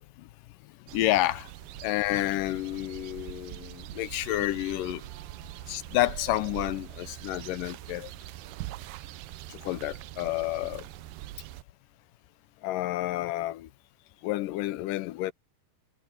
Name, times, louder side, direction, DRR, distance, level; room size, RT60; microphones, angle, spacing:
voice 1, 0.9-1.5 1.8-5.0 5.7-8.1 9.6-10.8 12.6-13.7 14.2-15.3, left 16 dB, 85° left, 2.3 m, -29 dB
sound 1, 0.9-11.6, right 16 dB, 85° right, 2.3 m, -43 dB
omnidirectional pair, 3.9 m